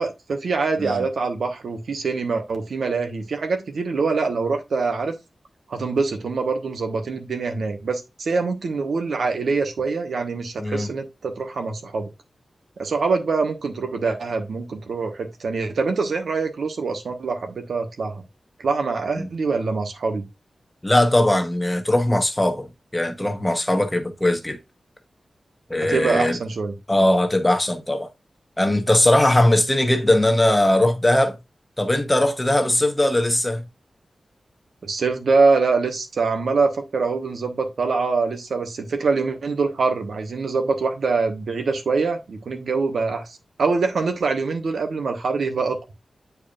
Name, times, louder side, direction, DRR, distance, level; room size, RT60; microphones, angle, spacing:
voice 1, 0.0-5.1 5.7-12.1 12.8-18.2 18.6-20.2 25.8-26.7 34.8-45.8, right 4 dB, 85° right, 1.2 m, -24 dB
voice 2, 20.8-22.7 22.9-24.6 25.7-26.4 26.9-28.1 28.6-31.4 31.8-33.6, left 1 dB, 15° left, 1.0 m, -19 dB
8.8 x 4.6 x 2.5 m
wide cardioid pair, 145°, 0 cm